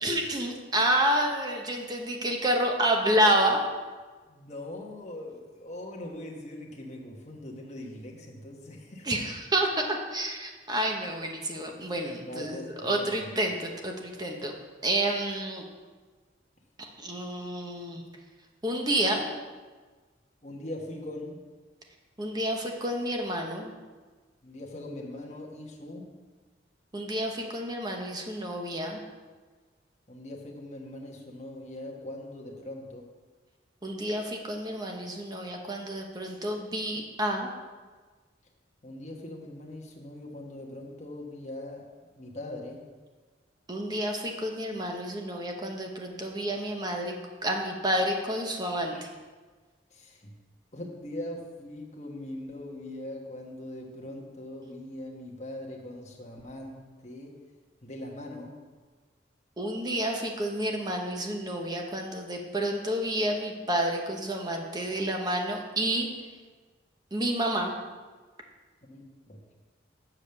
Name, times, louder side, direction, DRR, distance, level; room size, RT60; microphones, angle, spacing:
voice 1, 0.0-3.6 9.0-14.5 14.8-15.6 17.0-18.0 18.6-19.3 22.2-23.7 26.9-29.0 33.8-37.5 43.7-47.1 47.4-49.1 59.6-66.1 67.1-67.7, right 1 dB, 20° right, 2 dB, 0.9 m, -29 dB
voice 2, 4.3-9.1 12.3-13.3 20.4-21.4 24.4-26.1 30.1-33.0 38.8-41.8 42.1-42.8 48.9-49.0 49.9-50.3 50.7-57.3 57.8-58.5 68.8-69.4, left 1 dB, 35° left, -1 dB, 1.3 m, -41 dB
7.4 x 5.0 x 6.9 m, 1.4 s
head